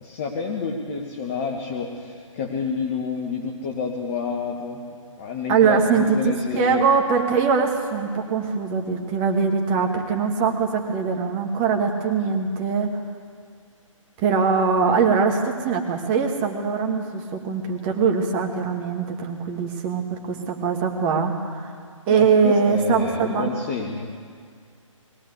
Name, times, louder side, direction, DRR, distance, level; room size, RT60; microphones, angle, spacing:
voice 1, 0.0-4.8 5.2-6.9 22.1-24.1, left 5 dB, 25° left, 0 dB, 1.6 m, -29 dB
voice 2, 5.5-12.9 14.2-21.7 22.1-23.5, right 5 dB, 20° right, 3 dB, 2.0 m, -22 dB
21.5 x 16.0 x 8.3 m, 2.1 s
figure-of-eight pair, 140°, 17 cm